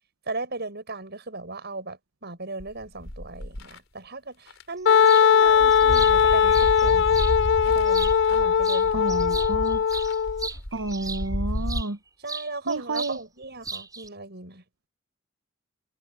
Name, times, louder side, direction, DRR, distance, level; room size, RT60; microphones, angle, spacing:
voice 1, 0.3-7.3 7.7-9.2 12.2-14.6, right 3 dB, 55° right, 7.4 m, -37 dB
sound 1, 2.6-3.8 4.5-4.6 4.9-11.8, equal, 75° left, 4.4 m, -32 dB
Wind instrument woodwind instrument, 4.9-10.5, left 7 dB, 60° left, 0.3 m, -19 dB
sound 2, 5.1-5.3 5.7-7.4 7.9-8.4 8.6-11.9 12.3-13.2 13.4-14.1, right 4 dB, 20° right, 6.9 m, -36 dB
voice 2, 8.9-9.8 10.7-12.0 12.7-13.2, right 2 dB, 85° right, 1.1 m, -30 dB
head